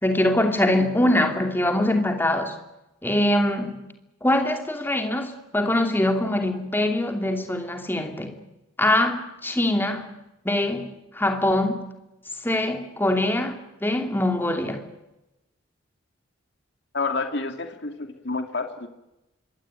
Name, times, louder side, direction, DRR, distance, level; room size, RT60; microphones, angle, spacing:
voice 1, 0.0-2.5 3.0-3.8 4.2-8.4 8.8-10.1 10.4-11.9 12.4-14.8, left 1 dB, 10° left, 2.9 m, -23 dB
voice 2, 16.9-18.9, left 3 dB, 55° left, 2.5 m, -29 dB
25.5 x 22.0 x 9.1 m
head